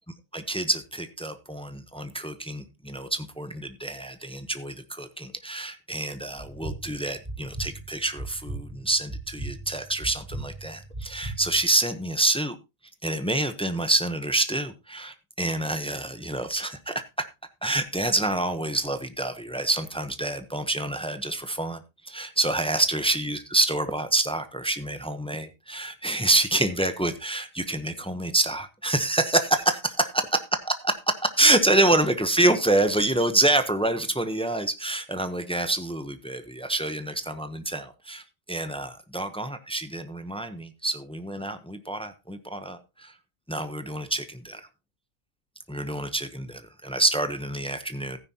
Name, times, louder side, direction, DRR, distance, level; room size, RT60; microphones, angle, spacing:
voice 1, 0.3-12.6 13.0-16.9 17.6-30.2 30.8-38.2 38.5-43.1 43.5-44.6 45.7-48.2, right 2 dB, 5° left, 10 dB, 0.6 m, -27 dB
sound 1, 6.4-11.7, right 2 dB, 15° right, 6.1 m, -38 dB
15.0 x 9.7 x 2.8 m, 0.25 s
omnidirectional pair, 1.4 m